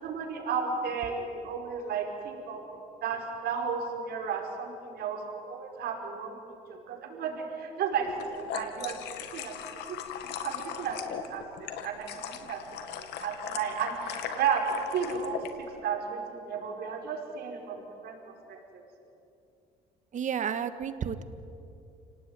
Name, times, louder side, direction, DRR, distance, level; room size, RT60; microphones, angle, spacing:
voice 1, 0.0-2.6 3.0-6.4 6.7-9.0 9.3-9.5 9.9-10.0 10.2-11.0 11.3-12.6 12.9-18.2 18.5-18.8, right 6 dB, 70° right, 2 dB, 5.3 m, -33 dB
sound 1, 8.1-15.5, left 9 dB, 80° left, 2.2 m, -39 dB
voice 2, 20.1-21.2, right 8 dB, 45° right, 11 dB, 1.7 m, -31 dB
29.5 x 18.5 x 9.8 m, 2.6 s
cardioid pair, 110°, 17 cm